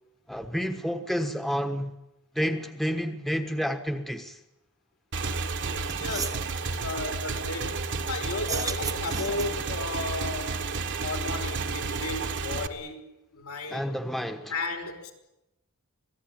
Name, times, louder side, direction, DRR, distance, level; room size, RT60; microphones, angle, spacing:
voice 1, 0.3-1.9 2.3-4.4 13.7-14.5, equal, ahead, 1.3 m, -30 dB
Motorcycle / Engine, 5.1-12.7, right 4 dB, 55° right, 1.6 m, -31 dB
sound 1, 5.5-5.6 5.9-6.4 8.4-9.7, right 5 dB, 15° right, 0.8 m, -35 dB
voice 2, 6.0-6.4 6.8-7.8 8.1-10.6 10.9-13.9 14.5-15.1, left 3 dB, 80° left, 5.1 m, -34 dB
26.0 x 18.5 x 8.9 m
head